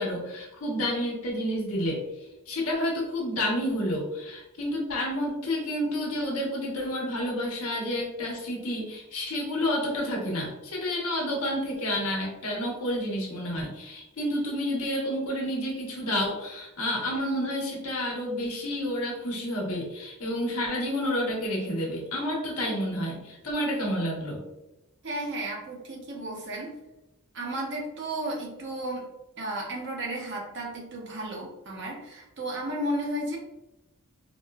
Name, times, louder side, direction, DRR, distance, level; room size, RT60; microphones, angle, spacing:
voice 1, 0.0-2.0 2.5-24.4, equal, 75° left, -2 dB, 1.0 m, -30 dB
voice 2, 25.0-26.7 27.3-29.1 29.4-33.4, right 1 dB, 55° right, -1 dB, 0.8 m, -33 dB
4.1 x 2.1 x 2.3 m, 0.95 s
head